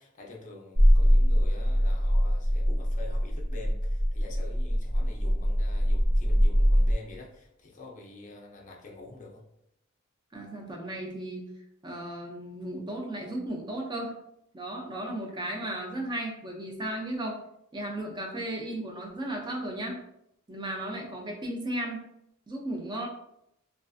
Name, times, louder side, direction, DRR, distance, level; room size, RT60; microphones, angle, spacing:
voice 1, 0.0-9.4, left 3 dB, 35° left, -1 dB, 0.4 m, -47 dB
sound 1, 0.8-6.9, equal, 75° right, 0.8 m, -23 dB
voice 2, 10.3-11.4 11.8-14.2 14.5-17.4 17.7-20.0 20.5-22.0 22.5-23.1, right 1 dB, 20° right, 0 dB, 0.4 m, -35 dB
2.3 x 2.3 x 2.4 m, 0.79 s
head